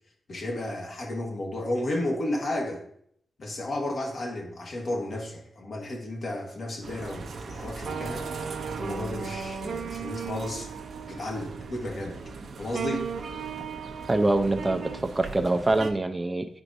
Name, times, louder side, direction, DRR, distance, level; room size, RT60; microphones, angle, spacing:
voice 1, 0.3-2.8 3.4-8.3 8.8-10.7 11.1-12.2 12.6-13.1, left 1 dB, 60° left, 1 dB, 1.4 m, -33 dB
sound 1, 6.8-15.9, right 5 dB, 70° right, 0.6 m, -36 dB
voice 2, 14.1-14.8 15.2-16.5, right 2 dB, 20° right, 6 dB, 0.4 m, -24 dB
9.7 x 4.6 x 2.6 m, 0.67 s
cardioid pair, 85°, 0 cm